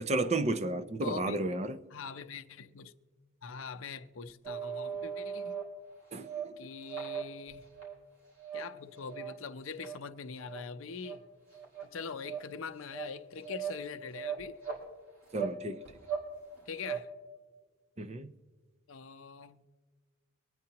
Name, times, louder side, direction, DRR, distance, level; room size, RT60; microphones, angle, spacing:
voice 1, 0.0-1.7 6.1-6.3 15.3-15.8 18.0-18.3, right 2 dB, 30° right, 0.5 m, -32 dB
voice 2, 1.0-1.4 1.9-2.9 3.4-5.6 6.6-7.7 8.5-11.2 11.8-14.6 16.7-17.1 18.9-19.6, left 5 dB, 75° left, 0.6 m, -43 dB
sound 1, 4.4-5.6 6.1-6.5 6.8-7.9 8.4-8.7 9.0-9.3 9.8-9.9 10.4-10.6 11.0-11.1 11.5-11.9 12.2-12.4 12.9-13.1 13.4-13.8 14.1-14.8 15.3-15.6 15.8-16.3 16.6-17.0, right 8 dB, 70° right, 3.9 m, -38 dB
24.0 x 9.3 x 2.9 m
head